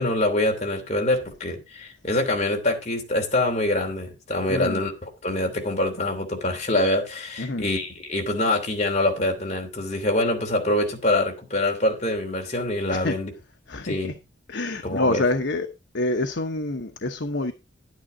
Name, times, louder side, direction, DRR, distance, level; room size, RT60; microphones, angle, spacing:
voice 1, 0.0-13.3 13.8-14.1 14.8-15.2, left 1 dB, 35° left, 2.9 m, -25 dB
voice 2, 4.5-4.8 7.4-7.7 12.9-13.2 13.7-14.1 14.5-15.7 15.9-17.5, left 2 dB, 70° left, 1.0 m, -26 dB
11.0 x 9.5 x 3.8 m
head